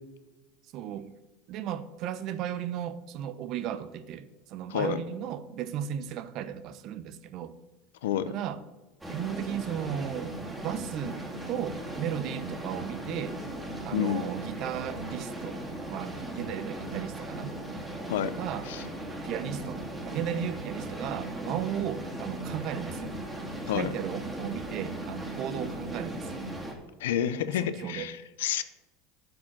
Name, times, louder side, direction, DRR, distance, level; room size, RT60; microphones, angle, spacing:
voice 1, 0.7-1.1 1.5-7.5 8.3-8.6 9.1-13.4 13.8-15.6 15.9-17.5 18.2-18.7 19.2-23.1 23.7-26.4 27.6-28.1, right 9 dB, 55° right, 14 dB, 0.8 m, -35 dB
voice 2, 4.7-5.0 8.0-8.3 13.9-14.3 18.1-18.3 18.7-18.8 23.7-23.9 27.0-28.6, left 10 dB, 80° left, 13 dB, 0.7 m, -29 dB
sound 1, 9.0-26.7, right 1 dB, 10° right, 2.6 m, -38 dB
8.6 x 6.2 x 7.4 m, 1.1 s
hypercardioid pair, 95°, 0 cm